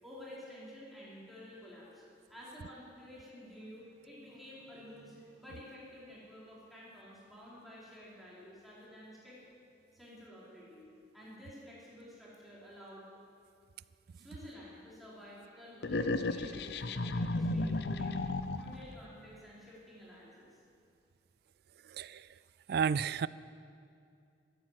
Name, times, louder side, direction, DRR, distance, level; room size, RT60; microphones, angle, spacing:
voice 1, 0.0-2.0 2.3-9.4 9.9-13.1 14.1-18.2 18.6-20.6, left 1 dB, ahead, -8 dB, 4.6 m, -51 dB
sound 1, 15.8-18.9, left 2 dB, 65° left, 0.7 m, -34 dB
voice 2, 22.7-23.3, right 6 dB, 60° right, 19 dB, 0.4 m, -31 dB
14.0 x 13.0 x 7.7 m, 2.4 s
head